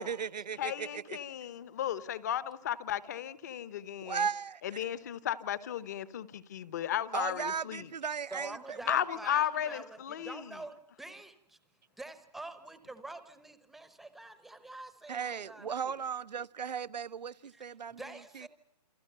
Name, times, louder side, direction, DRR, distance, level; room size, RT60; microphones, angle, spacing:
voice 1, 0.0-1.2 4.0-4.9 7.1-9.0 15.1-18.0 18.3-18.5, right 7 dB, 85° right, 0.9 m, -36 dB
voice 2, 0.6-4.3 4.6-7.9 8.9-10.5, left 10 dB, 25° left, 0.9 m, -35 dB
voice 3, 8.3-11.6 12.0-15.9 17.5-17.6 18.0-18.5, right 2 dB, ahead, 0.9 m, -46 dB
29.0 x 23.5 x 6.7 m
hypercardioid pair, 170°, 21 cm